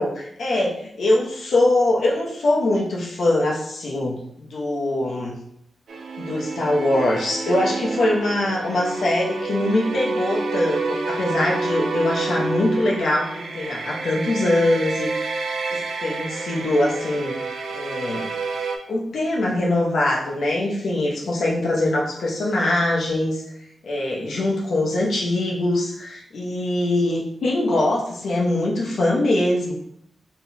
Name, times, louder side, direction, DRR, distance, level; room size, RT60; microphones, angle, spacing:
voice 1, 0.0-5.3 6.2-15.4 15.7-17.4 17.7-18.3 18.9-23.4 23.8-29.7, left 1 dB, 75° left, -2 dB, 0.9 m, -22 dB
sound 1, 5.9-18.8, right 3 dB, 70° right, 0.5 m, -29 dB
3.7 x 2.3 x 4.1 m, 0.72 s
cardioid pair, 95°, 0 cm